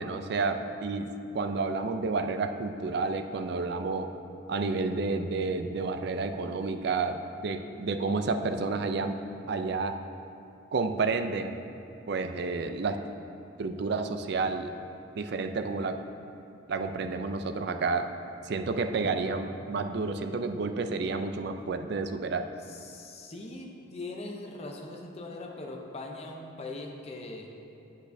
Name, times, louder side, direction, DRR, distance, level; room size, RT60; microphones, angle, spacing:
voice 1, 0.0-4.1 4.5-9.2 9.5-9.9 10.7-11.5 12.1-13.0 13.6-14.7 15.2-16.0 16.7-18.1 18.4-22.5, right 4 dB, 60° right, 8 dB, 0.4 m, -30 dB
voice 2, 22.7-27.5, left 2 dB, 35° left, 1 dB, 0.6 m, -41 dB
8.4 x 8.1 x 2.7 m, 2.7 s
head